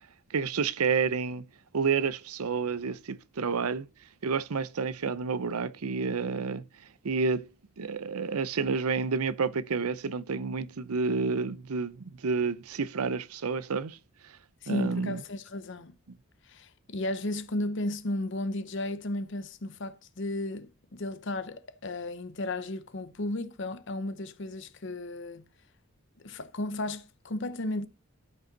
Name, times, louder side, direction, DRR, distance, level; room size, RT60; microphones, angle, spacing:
voice 1, 0.3-1.4 1.7-3.9 4.2-7.5 7.8-14.0 14.2-14.4 14.7-15.2, right 5 dB, 85° right, 0.6 m, -30 dB
voice 2, 14.6-15.9 16.4-25.5 26.2-27.9, left 1 dB, 55° left, 0.8 m, -34 dB
12.0 x 5.4 x 4.0 m
head